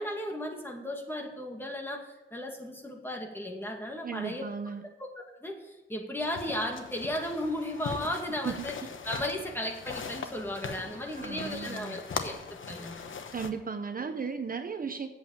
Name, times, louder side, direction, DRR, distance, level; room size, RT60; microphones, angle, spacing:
voice 1, 0.0-4.5 5.0-8.7 9.0-13.0, left 1 dB, 10° left, 1 dB, 2.0 m, -35 dB
voice 2, 4.0-4.9 8.4-8.9 11.1-12.0 13.3-15.1, right 5 dB, 45° right, 7 dB, 0.8 m, -36 dB
sound 1, 6.2-13.5, left 5 dB, 80° left, 1.0 m, -40 dB
8.2 x 7.5 x 8.6 m, 1.1 s
wide cardioid pair, 115°, 20 cm